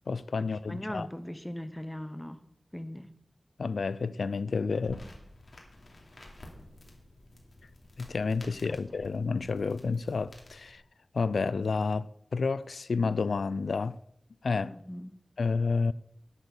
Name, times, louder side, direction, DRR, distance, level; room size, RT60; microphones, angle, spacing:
voice 1, 0.1-1.1 3.6-5.0 8.0-10.8 11.1-14.0 14.4-14.7 15.4-15.9, left 4 dB, 90° left, 0.4 m, -30 dB
voice 2, 0.7-2.4 2.7-3.1 8.6-9.0 14.7-15.1, equal, 10° left, 1.0 m, -39 dB
sound 1, 4.7-10.7, left 1 dB, 60° left, 3.0 m, -51 dB
11.0 x 8.2 x 7.1 m
wide cardioid pair, 95°, 0 cm